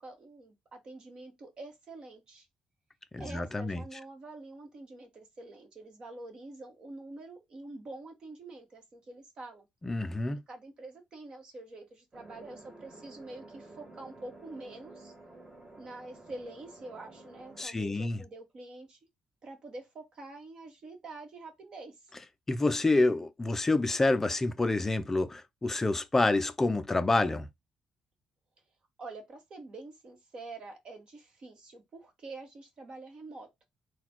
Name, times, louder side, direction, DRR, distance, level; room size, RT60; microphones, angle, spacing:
voice 1, 0.0-2.5 3.2-9.6 10.5-15.1 15.8-19.0 19.4-22.1 29.0-33.5, right 2 dB, 40° right, 1.6 m, -46 dB
voice 2, 3.1-3.8 9.8-10.4 17.6-18.2 22.5-27.5, left 2 dB, 15° left, 0.6 m, -28 dB
sound 1, 12.1-17.7, right 2 dB, 20° right, 1.4 m, -52 dB
4.0 x 2.4 x 4.4 m
cardioid pair, 140°, 2 cm